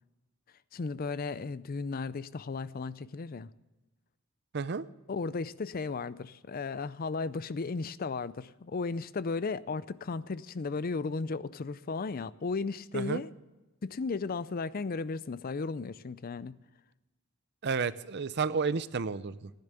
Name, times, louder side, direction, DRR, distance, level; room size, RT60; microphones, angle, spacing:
voice 1, 0.7-3.5 5.1-13.3 13.8-16.6, left 4 dB, 40° left, 0.4 m, -35 dB
voice 2, 4.5-4.8 12.9-13.2 17.6-19.5, right 5 dB, 50° right, 0.6 m, -31 dB
15.5 x 10.5 x 6.7 m
head